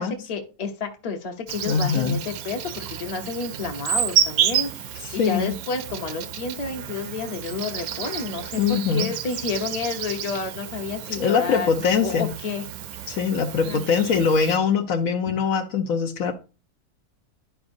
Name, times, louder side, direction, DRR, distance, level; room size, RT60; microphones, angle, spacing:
voice 1, 0.3-11.7 12.0-12.6 12.9-13.1 13.6-13.9 15.3-15.4, left 4 dB, 30° left, 0.9 m, -30 dB
Insect, 1.5-14.6, right 9 dB, 75° right, 1.1 m, -30 dB
voice 2, 1.7-2.2 5.0-5.5 8.6-9.1 11.1-12.3 13.1-16.3, left 6 dB, 70° left, 1.1 m, -22 dB
11.5 x 4.8 x 2.6 m
omnidirectional pair, 1.6 m